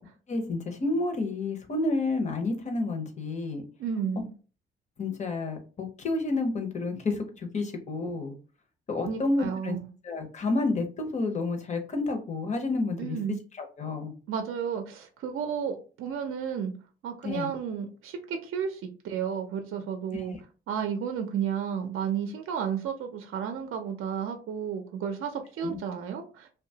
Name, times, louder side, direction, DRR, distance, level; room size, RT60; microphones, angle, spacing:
voice 1, 0.3-3.6 5.0-8.3 8.9-9.8 10.0-13.2 13.5-14.1 17.2-17.5 20.1-20.4 25.6-25.8, left 3 dB, 35° left, 4 dB, 0.7 m, -30 dB
voice 2, 3.8-4.3 9.0-9.9 13.0-13.4 14.3-16.7 17.0-20.3 20.7-26.5, right 7 dB, 75° right, 5 dB, 0.5 m, -32 dB
2.8 x 2.2 x 2.7 m, 0.36 s
cardioid pair, 120°, 21 cm